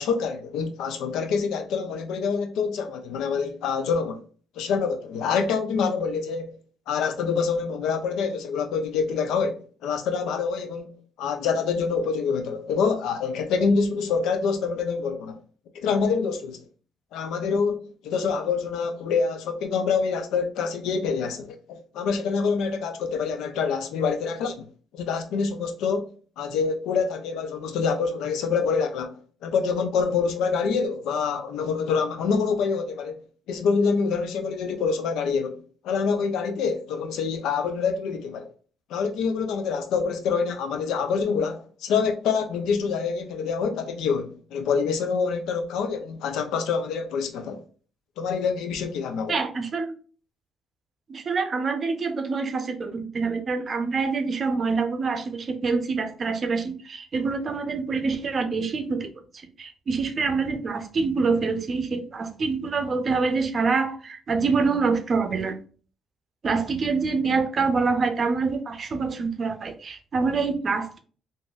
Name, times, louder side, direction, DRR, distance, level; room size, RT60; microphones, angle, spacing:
voice 1, 0.0-4.2 4.6-6.5 6.9-10.9 11.2-15.4 15.7-16.6 17.1-24.7 24.9-26.1 26.4-29.2 29.4-33.2 33.5-38.5 38.9-47.6 48.2-49.3, left 5 dB, 90° left, 0.5 m, -26 dB
voice 2, 49.3-49.9 51.1-59.1 59.6-65.5 66.4-71.0, right 4 dB, 40° right, 0.5 m, -26 dB
3.8 x 2.5 x 2.3 m
cardioid pair, 125°, 0 cm